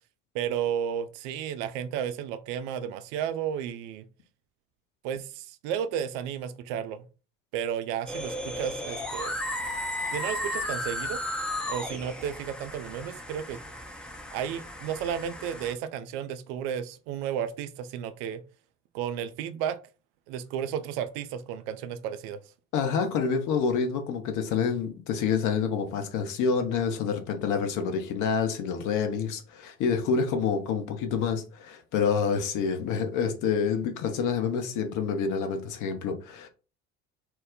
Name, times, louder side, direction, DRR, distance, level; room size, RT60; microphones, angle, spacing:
voice 1, 0.3-4.1 5.0-7.1 7.5-9.4 10.1-11.2 11.7-13.6 14.3-18.4 18.9-19.8 20.3-22.4, right 9 dB, 60° right, 0.5 m, -33 dB
sound 1, 8.1-15.7, left 1 dB, ahead, 0.5 m, -34 dB
voice 2, 22.7-36.5, left 6 dB, 50° left, 0.7 m, -27 dB
2.3 x 2.0 x 3.6 m
figure-of-eight pair, 55°, 38 cm